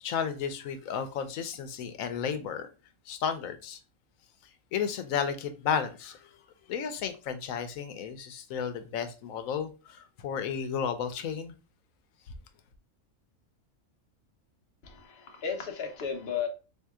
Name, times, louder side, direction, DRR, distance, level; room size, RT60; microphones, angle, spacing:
voice 1, 0.0-2.7 3.1-3.8 4.7-6.3 6.7-11.5, left 7 dB, 85° left, 1.0 m, -33 dB
voice 2, 14.8-16.5, left 7 dB, 55° left, 1.0 m, -34 dB
3.6 x 2.7 x 3.5 m
omnidirectional pair, 1.4 m